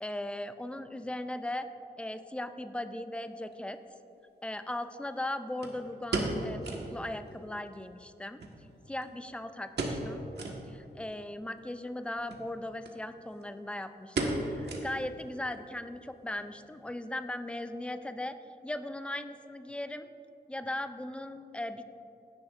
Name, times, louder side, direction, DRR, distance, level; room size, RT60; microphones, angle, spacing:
voice 1, 0.0-1.7 2.0-3.8 4.4-8.4 8.9-10.2 10.7-18.4 18.6-20.1 20.5-21.8, left 1 dB, 5° left, 10 dB, 0.4 m, -38 dB
sound 1, 3.5-3.6 5.6-7.0 7.3-7.4 7.7-7.8 8.4-9.3 9.7-10.1 10.3-10.6 11.1-11.2 12.2-12.5 12.8-13.0 13.3-13.6 14.2-15.2 15.5-15.6 16.2-16.5 16.8-16.9, right 2 dB, 80° right, 1.4 m, -34 dB
16.0 x 10.5 x 2.5 m, 2.8 s
wide cardioid pair, 140°, 17 cm